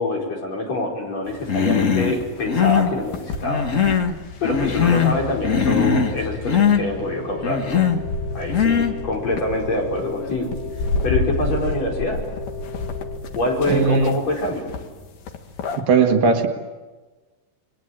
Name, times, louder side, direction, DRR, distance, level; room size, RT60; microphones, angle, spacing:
voice 1, 0.0-3.7 4.4-7.8 8.3-10.5 11.0-12.2 13.3-14.7, left 2 dB, 50° left, 0 dB, 6.1 m, -25 dB
sound 1, 1.3-15.8, left 3 dB, 70° left, 3.3 m, -31 dB
Human voice, 1.5-2.2 2.4-2.9 3.4-4.1 4.4-5.2 5.4-6.2 6.4-6.8 7.4-8.0 8.5-8.9, left 6 dB, 90° left, 0.7 m, -20 dB
sound 2, 6.9-13.2, left 4 dB, 30° right, 2.6 m, -36 dB
voice 2, 13.7-14.1 15.9-16.5, right 5 dB, 80° right, 4 dB, 3.7 m, -17 dB
28.5 x 22.0 x 8.9 m, 1.3 s
omnidirectional pair, 3.9 m